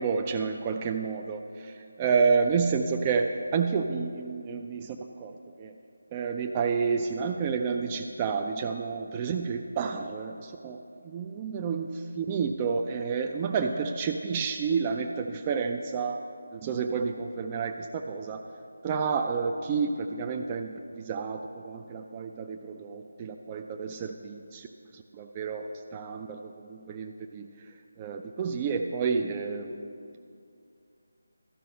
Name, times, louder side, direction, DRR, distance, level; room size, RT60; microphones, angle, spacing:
voice 1, 0.0-5.7 6.1-16.2 16.5-18.4 18.8-24.7 24.9-27.5 28.0-30.1, right 5 dB, 20° right, 4 dB, 0.3 m, -30 dB
12.5 x 5.4 x 5.6 m, 2.4 s
figure-of-eight pair, 160°, 0 cm